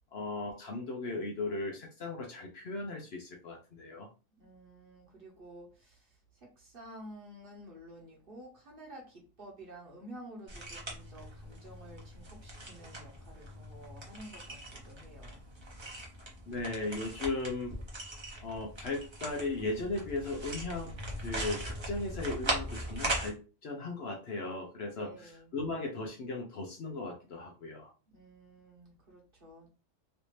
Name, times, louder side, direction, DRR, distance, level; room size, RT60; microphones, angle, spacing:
voice 1, 0.1-4.1 16.4-17.8 18.4-27.9, left 2 dB, 60° left, 1 dB, 0.8 m, -37 dB
voice 2, 4.4-15.4 24.9-25.5 28.1-29.7, right 1 dB, 45° right, -1 dB, 1.2 m, -51 dB
sound 1, 10.5-23.3, right 1 dB, 25° right, 0.8 m, -40 dB
3.2 x 2.7 x 3.1 m, 0.33 s
omnidirectional pair, 1.4 m